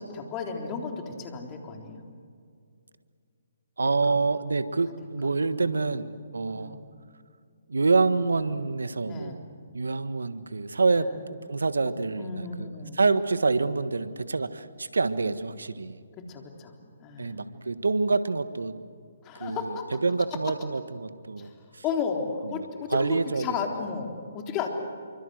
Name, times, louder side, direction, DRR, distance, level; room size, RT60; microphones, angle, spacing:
voice 1, 0.0-2.0 3.8-4.2 5.2-5.3 5.6-5.9 6.5-6.8 9.1-9.4 10.9-11.2 12.2-13.0 16.3-17.4 19.2-20.0 21.4-21.5 21.8-24.7, left 6 dB, 25° left, 3 dB, 3.7 m, -34 dB
voice 2, 3.8-6.8 7.7-9.5 9.7-16.0 17.2-18.7 19.4-19.8 20.0-21.5 21.7-21.8 22.9-23.5, right 3 dB, 80° right, 12 dB, 1.5 m, -27 dB
27.0 x 24.5 x 8.0 m, 2.2 s
figure-of-eight pair, 140°, 0 cm